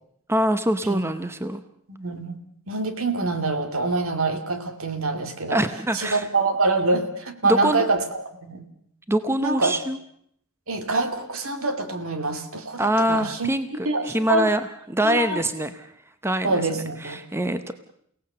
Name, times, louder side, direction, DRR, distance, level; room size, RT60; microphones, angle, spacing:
voice 1, 0.3-1.6 5.5-6.3 7.4-7.9 9.1-10.0 12.8-15.9 16.2-16.6 17.0-17.7, right 1 dB, 10° right, 10 dB, 0.8 m, -24 dB
voice 2, 1.9-2.4 2.7-5.6 5.9-8.6 9.4-9.7 10.7-13.5 13.8-14.5 15.0-15.4 16.4-17.2, right 3 dB, 65° right, 7 dB, 2.5 m, -25 dB
29.5 x 17.5 x 6.7 m, 0.70 s
head